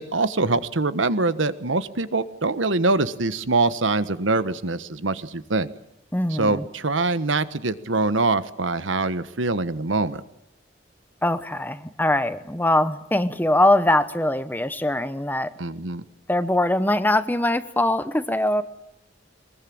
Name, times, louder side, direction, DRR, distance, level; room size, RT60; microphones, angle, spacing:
voice 1, 0.0-5.7 6.4-10.2 15.6-16.0, right 3 dB, 90° right, 13 dB, 1.4 m, -24 dB
voice 2, 6.1-6.6 11.2-15.5 16.3-18.6, left 1 dB, 10° left, 12 dB, 1.0 m, -22 dB
23.0 x 21.5 x 8.7 m, 0.86 s
head